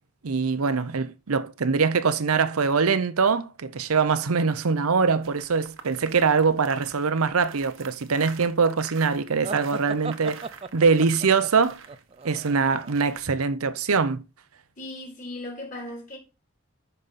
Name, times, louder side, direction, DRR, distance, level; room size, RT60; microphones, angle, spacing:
voice 1, 0.2-10.5 10.7-11.8 12.2-14.2, right 5 dB, 90° right, 0.7 m, -23 dB
Steps on Seashells, 5.2-13.3, right 6 dB, 70° right, 1.0 m, -46 dB
sound 1, 9.4-13.1, right 4 dB, 25° right, 0.3 m, -38 dB
voice 2, 14.8-16.2, left 1 dB, 35° left, 3.7 m, -37 dB
11.0 x 5.3 x 4.1 m
head